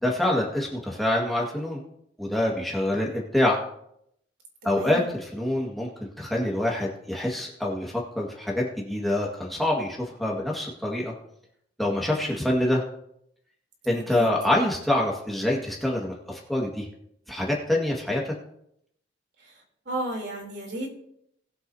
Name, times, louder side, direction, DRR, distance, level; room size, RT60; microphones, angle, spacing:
voice 1, 0.0-1.8 2.2-3.6 4.6-5.0 5.3-5.9 6.2-11.1 11.8-12.8 13.9-16.9 17.3-18.3, left 1 dB, ahead, -4 dB, 1.8 m, -26 dB
voice 2, 4.6-5.0 14.1-14.3 19.4-20.9, right 1 dB, 55° right, 0 dB, 3.5 m, -33 dB
20.0 x 7.7 x 2.8 m, 0.74 s
head